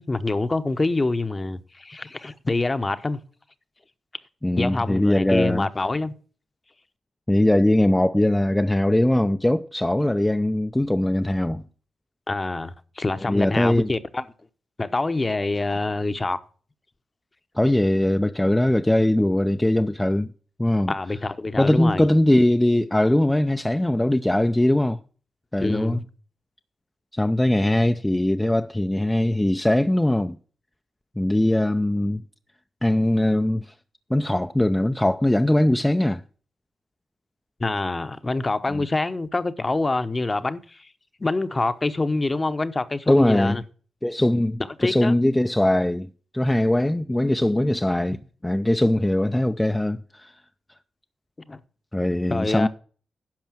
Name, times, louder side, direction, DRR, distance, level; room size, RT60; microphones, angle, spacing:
voice 1, 0.0-3.2 4.6-6.1 12.3-14.3 14.8-16.4 20.9-22.1 25.6-26.0 37.6-40.9 41.2-43.6 44.8-45.2 51.5-51.6 52.3-52.7, left 2 dB, 30° left, 0.9 m, -26 dB
voice 2, 4.4-5.7 7.3-11.6 13.3-13.9 17.6-20.3 20.6-20.9 21.6-25.0 25.5-26.0 27.1-30.4 31.2-32.2 32.8-33.7 34.1-36.2 38.7-38.9 43.1-43.6 44.0-48.2 48.4-50.3 51.9-52.7, left 1 dB, 10° left, 0.5 m, -21 dB
10.5 x 5.5 x 7.5 m
supercardioid pair, 50°, 0 cm